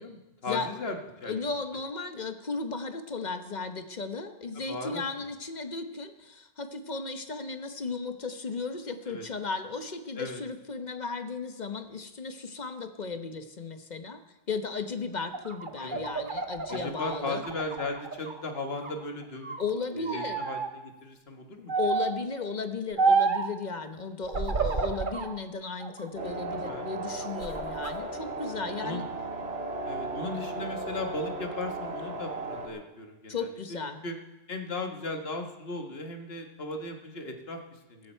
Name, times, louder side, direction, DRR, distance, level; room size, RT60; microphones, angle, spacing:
voice 1, 0.0-1.4 4.6-5.3 9.1-9.3 10.2-10.4 15.8-16.0 16.7-19.6 19.9-21.7 24.5-24.7 26.7-26.9 28.8-29.0 29.8-33.5 34.0-34.2 34.5-38.1, left 2 dB, 70° left, 4 dB, 1.7 m, -37 dB
voice 2, 1.3-14.2 14.5-17.4 19.6-20.4 21.8-29.1 33.3-34.0, left 4 dB, 45° left, 8 dB, 1.1 m, -35 dB
sound 1, 15.2-18.4 18.8-19.7 20.1-20.7 21.7-22.2 23.0-23.5 24.3-25.3 25.8-26.8 27.2-27.9, right 4 dB, 50° right, 1.3 m, -30 dB
sound 2, 26.2-32.7, right 2 dB, 80° right, 1.9 m, -36 dB
15.0 x 14.5 x 4.5 m, 1.0 s
omnidirectional pair, 1.1 m